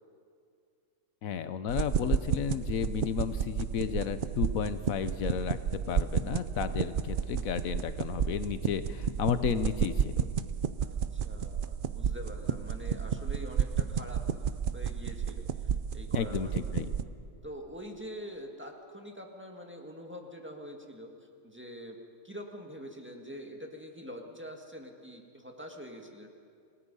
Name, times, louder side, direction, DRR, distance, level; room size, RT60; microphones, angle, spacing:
voice 1, 1.2-10.3 16.1-16.9, left 8 dB, 90° left, 12 dB, 1.3 m, -33 dB
sound 1, 1.7-17.0, right 7 dB, 55° right, 0.6 m, -32 dB
voice 2, 10.8-14.2 14.7-16.9 17.4-21.1 21.4-22.0 22.2-26.3, equal, 10° right, 1 dB, 1.8 m, -45 dB
28.0 x 18.0 x 5.5 m, 2.3 s
omnidirectional pair, 1.4 m